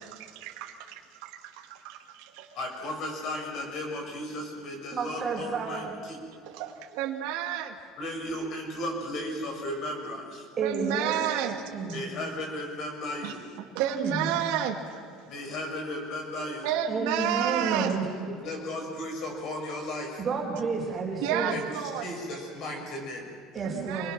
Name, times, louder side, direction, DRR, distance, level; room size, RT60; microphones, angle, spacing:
voice 1, 0.0-2.5 6.5-7.8 10.6-11.6 11.9-12.1 13.2-13.3 13.7-14.8 16.6-18.0 21.2-22.1 23.6-24.1, right 10 dB, 75° right, 1 dB, 2.1 m, -31 dB
voice 2, 2.5-6.2 8.0-10.5 11.9-13.4 15.3-16.7 18.4-20.2 21.5-23.3, left 1 dB, 45° left, 2 dB, 6.6 m, -35 dB
voice 3, 4.9-5.9 10.6-12.0 13.9-14.3 16.9-18.1 20.2-21.6 23.5-24.1, right 4 dB, 25° right, -2 dB, 4.7 m, -31 dB
28.0 x 20.5 x 6.1 m, 2.3 s
cardioid pair, 155°, 0 cm